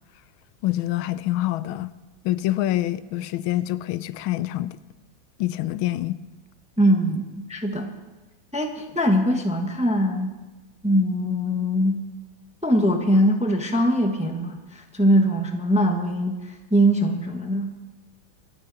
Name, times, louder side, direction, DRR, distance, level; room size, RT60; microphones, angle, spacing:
voice 1, 0.6-1.9 2.2-4.8 5.4-6.2, left 15 dB, 90° left, 15 dB, 1.4 m, -26 dB
voice 2, 6.8-7.9 8.5-10.3 10.8-12.0 12.6-17.7, equal, 5° right, 3 dB, 0.8 m, -22 dB
26.5 x 9.2 x 4.0 m, 1.2 s
omnidirectional pair, 2.2 m